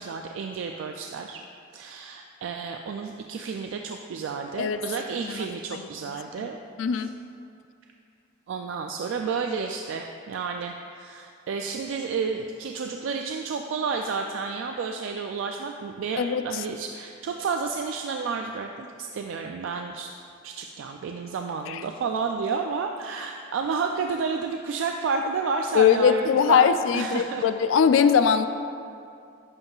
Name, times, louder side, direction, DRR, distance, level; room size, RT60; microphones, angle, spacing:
voice 1, 0.0-1.4 1.7-6.6 6.9-7.1 8.5-20.1 20.4-26.7 26.9-27.4, right 5 dB, 70° right, 4 dB, 0.3 m, -31 dB
voice 2, 6.8-7.1 16.2-16.6 21.7-21.8 25.7-28.5, left 7 dB, 70° left, 10 dB, 0.3 m, -21 dB
10.5 x 5.4 x 2.4 m, 2.5 s
head